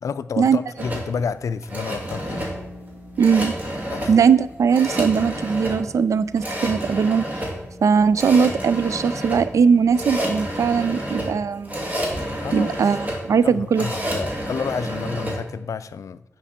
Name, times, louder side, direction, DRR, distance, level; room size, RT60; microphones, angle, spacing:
voice 1, 0.0-2.5 3.9-4.1 12.4-12.8 13.4-16.2, left 6 dB, 85° left, 0.4 m, -30 dB
sound 1, 0.8-15.4, equal, 30° right, 2.6 m, -29 dB
sound 2, 1.8-11.7, left 1 dB, 50° right, 2.8 m, -45 dB
voice 2, 3.2-3.5 4.1-7.3 7.8-11.8 12.5-13.9, right 6 dB, 85° right, 0.4 m, -19 dB
10.0 x 5.3 x 4.3 m
cardioid pair, 65°, 5 cm